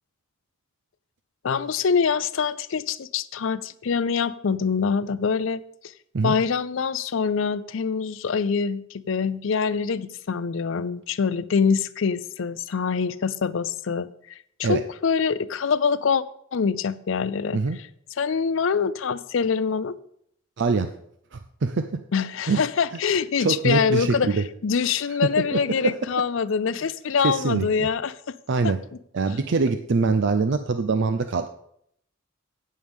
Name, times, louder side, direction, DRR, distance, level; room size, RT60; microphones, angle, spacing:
voice 1, 1.4-5.9 6.2-16.2 16.5-17.9 18.2-20.0 22.1-28.4, left 6 dB, 65° left, 16 dB, 0.5 m, -25 dB
voice 2, 20.6-20.9 21.3-22.0 22.5-22.6 23.4-24.4 25.5-25.9 27.2-27.9 28.5-28.8 29.1-31.5, right 4 dB, 60° right, 9 dB, 0.5 m, -24 dB
17.5 x 6.5 x 3.6 m, 0.69 s
head